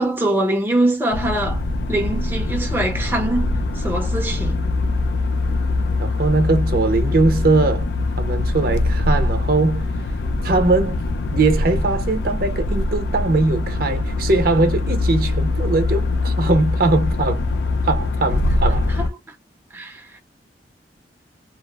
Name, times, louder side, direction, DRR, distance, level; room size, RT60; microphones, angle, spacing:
voice 1, 0.0-1.6 1.9-4.7 18.9-19.3 19.7-20.2, right 1 dB, 10° right, 0.6 m, -23 dB
sound 1, 1.1-19.1, left 2 dB, 65° left, 0.4 m, -22 dB
voice 2, 6.0-7.9 8.2-9.9 10.4-11.0 11.3-17.4 17.8-18.9, right 3 dB, 55° right, 0.8 m, -20 dB
2.9 x 2.0 x 2.2 m
head